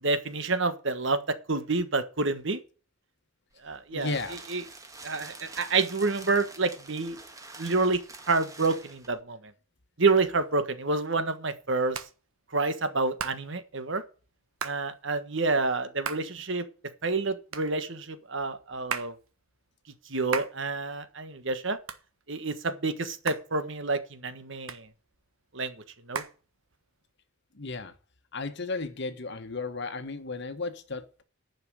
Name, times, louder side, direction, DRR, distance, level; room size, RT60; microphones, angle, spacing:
voice 1, 0.0-2.6 3.6-4.6 5.0-7.2 7.6-8.0 8.3-9.5 10.0-12.0 12.5-14.0 14.6-16.6 17.0-19.1 20.1-21.8 22.3-24.9 25.5-25.7 26.1-26.2, right 3 dB, 60° right, 1.4 m, -28 dB
sound 1, 3.5-9.2, right 3 dB, 15° right, 1.6 m, -47 dB
voice 2, 3.9-4.4 27.5-27.9 28.3-31.2, left 3 dB, 55° left, 1.2 m, -34 dB
Hands, 10.4-27.1, right 6 dB, 85° right, 1.3 m, -41 dB
11.0 x 5.9 x 8.8 m
head